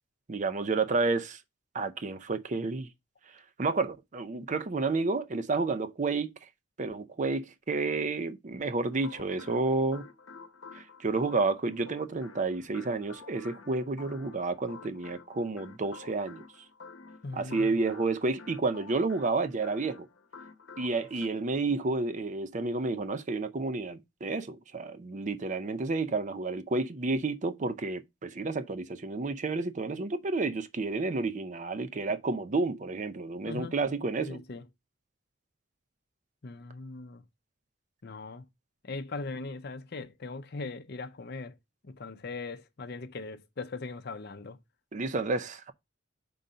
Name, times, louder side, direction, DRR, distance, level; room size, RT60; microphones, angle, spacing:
voice 1, 0.3-1.4 1.7-2.9 3.6-6.3 6.8-10.1 10.7-16.4 17.3-20.1 20.8-34.4 44.9-45.7, right 3 dB, 40° right, 0.5 m, -30 dB
sound 1, 8.9-21.3, left 4 dB, 75° left, 0.9 m, -50 dB
voice 2, 17.2-17.7 21.0-21.1 33.5-33.8 34.2-34.6 36.4-37.2 38.0-38.4 38.8-41.5 41.8-44.6, left 3 dB, 55° left, 0.6 m, -40 dB
5.1 x 3.9 x 5.5 m
head